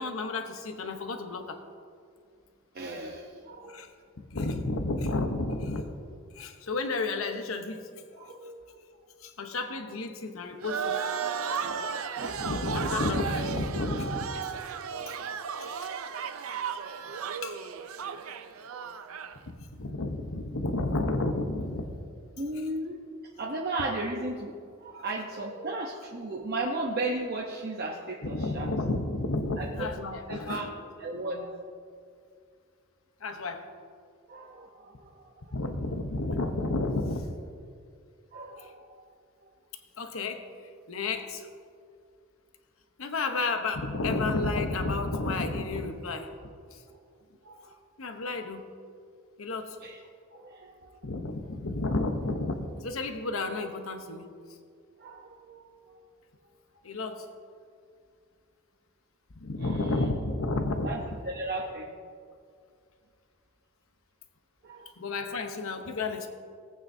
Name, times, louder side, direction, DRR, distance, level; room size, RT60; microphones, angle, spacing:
voice 1, 0.0-1.6 3.6-3.9 4.2-5.9 6.3-8.3 9.2-11.0 12.4-14.3 15.1-15.2 15.8-15.9 17.4-17.9 19.5-21.9 24.9-25.0 28.2-30.7 33.2-33.7 35.5-37.3 38.6-38.7 40.0-40.4 40.9-41.5 43.0-46.3 46.7-46.8 48.0-48.6 49.4-49.8 51.0-54.3 56.8-57.3 59.3-60.9 65.0-66.3, left 2 dB, 70° left, 6 dB, 0.9 m, -31 dB
voice 2, 2.7-3.8 8.2-8.8 11.6-11.8 12.2-12.5 14.7-15.4 18.7-19.0 22.4-23.0 23.4-28.7 29.6-29.7 30.1-30.7 31.0-31.7 34.3-35.6 38.3-38.9 47.4-47.7 49.8-50.0 50.3-51.0 55.0-55.7 59.6-60.1 60.8-61.9 64.6-64.9, right 2 dB, 50° right, -1 dB, 0.9 m, -36 dB
sound 1, 10.6-19.4, right 6 dB, 75° right, 0.6 m, -34 dB
18.5 x 8.8 x 2.7 m, 2.2 s
head